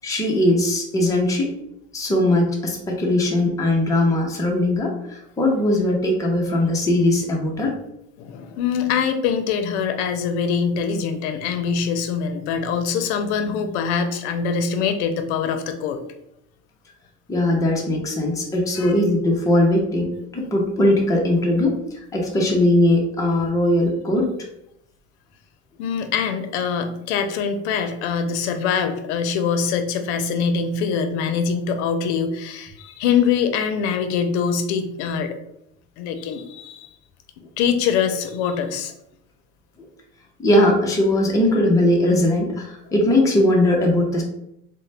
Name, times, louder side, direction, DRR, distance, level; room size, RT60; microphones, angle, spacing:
voice 1, 0.0-1.5 1.9-7.8 17.3-21.8 22.1-24.3 40.4-44.2, left 1 dB, 10° left, -1 dB, 0.7 m, -19 dB
voice 2, 8.2-16.0 18.8-19.0 25.8-35.4 36.0-36.9 37.6-38.9, left 6 dB, 80° left, 8 dB, 0.6 m, -23 dB
3.8 x 2.2 x 3.2 m, 0.80 s
supercardioid pair, 125°, 33 cm